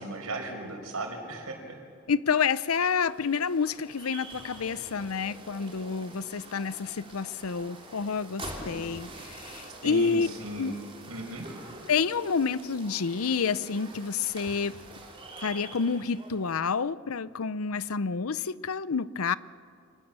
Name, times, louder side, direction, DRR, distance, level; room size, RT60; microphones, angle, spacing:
voice 1, 0.0-1.8 9.8-10.7 11.1-11.5, right 2 dB, 90° right, 5.3 m, -36 dB
voice 2, 2.1-10.3 10.6-10.7 11.9-14.8 15.4-19.3, left 5 dB, 80° left, 0.7 m, -29 dB
sound 1, 2.5-16.6, right 2 dB, 25° right, 3.6 m, -45 dB
30.0 x 25.5 x 7.5 m
head